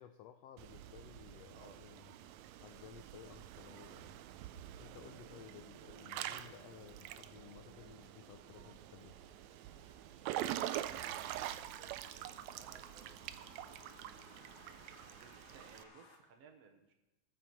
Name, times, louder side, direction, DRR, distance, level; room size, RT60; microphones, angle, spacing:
voice 1, 0.0-2.2 2.6-4.2 4.8-9.2, left 10 dB, 80° left, 7 dB, 1.5 m, -56 dB
Water / Splash splatter / Drip, 0.6-15.8, right 12 dB, 80° right, 1.8 m, -46 dB
sound 1, 7.5-15.2, right 2 dB, 40° right, 1.9 m, -67 dB
sound 2, 7.8-16.2, left 3 dB, 55° left, 2.5 m, -64 dB
voice 2, 10.6-13.8 15.2-16.9, right 5 dB, 65° right, 4 dB, 2.0 m, -61 dB
19.5 x 6.9 x 4.6 m, 1.0 s
omnidirectional pair, 3.4 m